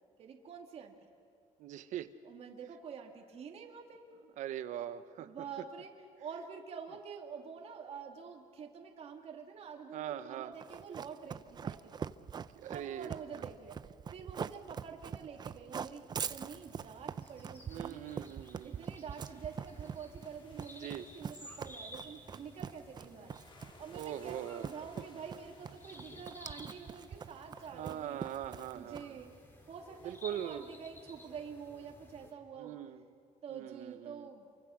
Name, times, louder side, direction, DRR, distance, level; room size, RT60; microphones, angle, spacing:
voice 1, 0.2-1.0 2.2-4.1 5.2-5.9 6.2-12.3 12.7-18.1 18.6-28.2 28.8-29.3 29.7-32.8 33.4-34.5, right 6 dB, 55° right, 1 dB, 2.4 m, -47 dB
voice 2, 1.6-2.1 4.4-5.3 9.9-10.5 12.5-13.2 17.7-18.8 20.8-21.0 23.9-24.7 27.7-29.2 30.0-30.6 32.6-33.0 33.5-34.3, right 11 dB, 80° right, 11 dB, 1.2 m, -41 dB
Run, 10.6-29.3, right 7 dB, 35° right, 0.6 m, -43 dB
sound 1, 16.2-32.3, left 1 dB, 15° left, 3.7 m, -55 dB
sound 2, 19.2-30.1, left 3 dB, 40° left, 3.4 m, -64 dB
28.0 x 24.0 x 6.4 m, 2.5 s
cardioid pair, 130°, 13 cm